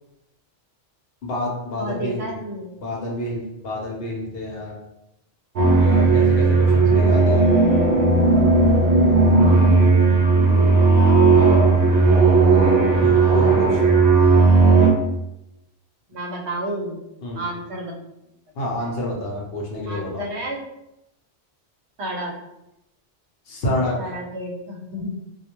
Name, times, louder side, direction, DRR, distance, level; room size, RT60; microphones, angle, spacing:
voice 1, 1.2-2.3 2.8-4.7 5.8-7.5 13.0-13.8 17.2-17.4 18.6-20.2 23.5-24.1, left 1 dB, 65° left, -2 dB, 0.8 m, -28 dB
voice 2, 1.8-2.7 10.1-11.9 16.1-17.0 17.4-17.9 19.9-20.6 22.0-22.3 24.0-25.1, right 1 dB, 70° right, -1 dB, 0.8 m, -31 dB
sound 1, 5.6-14.9, right 3 dB, 55° right, 0.5 m, -15 dB
2.3 x 2.1 x 2.8 m, 0.86 s
omnidirectional pair, 1.2 m